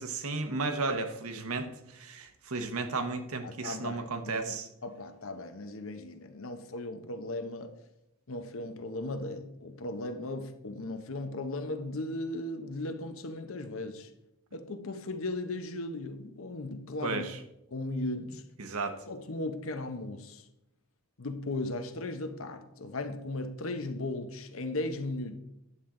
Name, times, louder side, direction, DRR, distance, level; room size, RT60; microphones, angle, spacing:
voice 1, 0.0-4.7 17.0-17.4 18.6-19.0, right 3 dB, 75° right, 1.1 m, -34 dB
voice 2, 3.4-7.8 8.3-14.1 14.5-17.3 17.7-18.4 19.1-20.5 21.2-25.4, left 2 dB, 65° left, 0.8 m, -37 dB
9.9 x 7.3 x 3.8 m
head